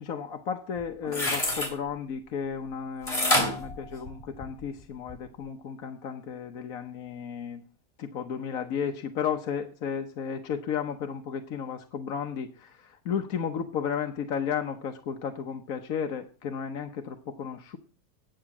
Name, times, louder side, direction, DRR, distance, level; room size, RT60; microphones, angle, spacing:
voice 1, 0.0-7.6 8.0-17.8, left 7 dB, 55° left, 1.2 m, -33 dB
sound 1, 0.8-1.7 3.1-4.6 5.1-5.2, left 1 dB, 20° left, 3.1 m, -27 dB
10.5 x 7.9 x 7.1 m
omnidirectional pair, 2.0 m